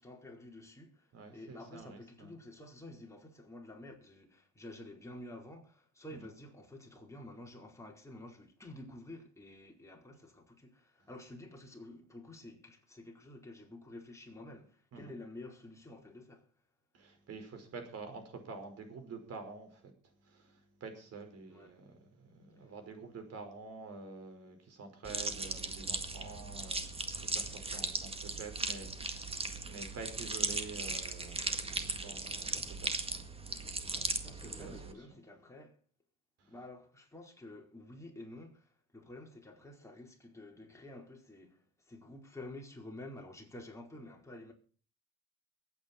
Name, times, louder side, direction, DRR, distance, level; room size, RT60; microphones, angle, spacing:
voice 1, 0.0-16.5 21.5-21.8 22.6-22.7 34.2-35.8 36.5-44.5, left 1 dB, 10° left, 4.6 m, -50 dB
voice 2, 1.1-2.3 14.9-15.1 16.9-19.9 20.2-33.3 33.9-34.6 36.4-36.5, right 4 dB, 55° right, 5.3 m, -48 dB
sound 1, 25.0-34.9, right 3 dB, 20° right, 1.8 m, -38 dB
23.5 x 9.2 x 4.5 m
cardioid pair, 105°, 31 cm